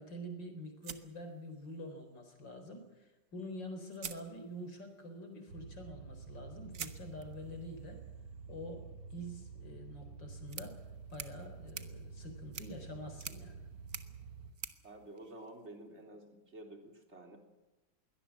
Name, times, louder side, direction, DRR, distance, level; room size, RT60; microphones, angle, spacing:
voice 1, 0.0-8.0 8.5-10.8 11.1-13.7, equal, 55° left, 6 dB, 4.7 m, -47 dB
sound 1, 0.8-2.0 3.3-3.4 3.9-4.9 6.7-15.9, right 7 dB, 45° right, 1.2 m, -50 dB
sound 2, 5.5-14.5, right 4 dB, 90° right, 2.7 m, -49 dB
voice 2, 14.8-17.4, right 1 dB, 30° right, 3 dB, 3.7 m, -51 dB
22.5 x 18.0 x 7.3 m, 1.1 s
omnidirectional pair, 2.4 m